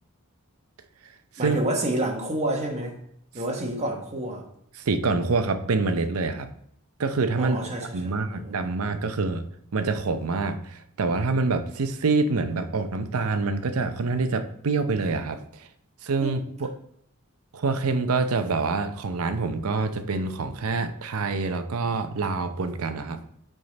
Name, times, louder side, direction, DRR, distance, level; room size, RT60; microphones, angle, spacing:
voice 1, 1.4-3.0 3.3-4.4 7.4-8.5 16.2-16.3, right 1 dB, 30° right, 1 dB, 1.2 m, -29 dB
voice 2, 4.8-6.5 7.0-7.6 7.9-9.4 9.7-15.7 16.0-16.7 17.5-23.2, right 3 dB, 90° right, 9 dB, 0.6 m, -26 dB
7.8 x 3.7 x 4.0 m, 0.72 s
head